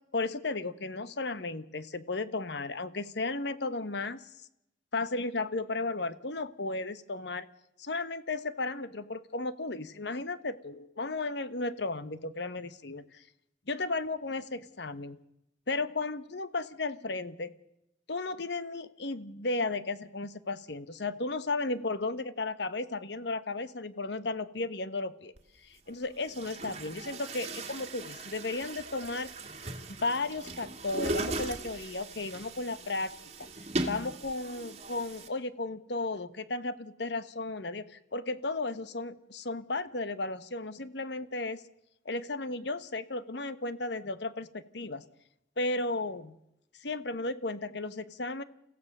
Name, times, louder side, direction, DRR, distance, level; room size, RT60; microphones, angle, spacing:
voice 1, 0.1-4.2 4.9-7.5 7.8-13.2 13.7-15.2 15.7-17.5 18.1-25.3 25.6-29.3 29.9-33.1 33.4-33.5 33.8-41.6 42.0-45.0 45.6-46.4 46.8-48.4, left 3 dB, 60° left, 13 dB, 1.1 m, -34 dB
Chatter / Gurgling / Tap, 25.4-25.5 26.2-35.3, right 2 dB, 35° right, 1.9 m, -38 dB
29.5 x 15.5 x 6.6 m, 0.83 s
head